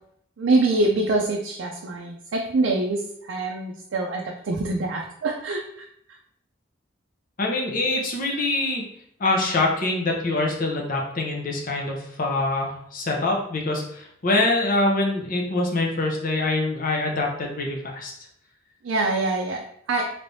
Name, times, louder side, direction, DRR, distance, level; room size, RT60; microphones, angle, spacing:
voice 1, 0.4-5.8 18.8-20.1, right 2 dB, 70° right, 0 dB, 0.4 m, -25 dB
voice 2, 7.4-8.8 9.2-18.1, left 2 dB, 45° left, 0 dB, 0.7 m, -24 dB
3.3 x 3.2 x 2.7 m, 0.69 s
head